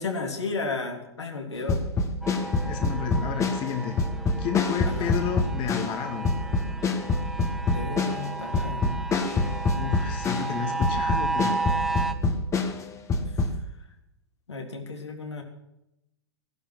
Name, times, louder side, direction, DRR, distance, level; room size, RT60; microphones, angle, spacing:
voice 1, 0.0-1.8 5.0-5.1 7.7-9.0 14.5-15.4, left 3 dB, 80° left, 2 dB, 3.4 m, -33 dB
sound 1, 1.7-10.6 10.8-13.5, left 3 dB, 20° left, 1.8 m, -26 dB
sound 2, 2.2-12.1, right 3 dB, ahead, 1.3 m, -33 dB
voice 2, 2.6-4.0 4.4-6.3 9.8-11.7, left 8 dB, 35° left, 5 dB, 1.9 m, -31 dB
16.0 x 11.5 x 6.2 m, 0.85 s
figure-of-eight pair, 105°, 14 cm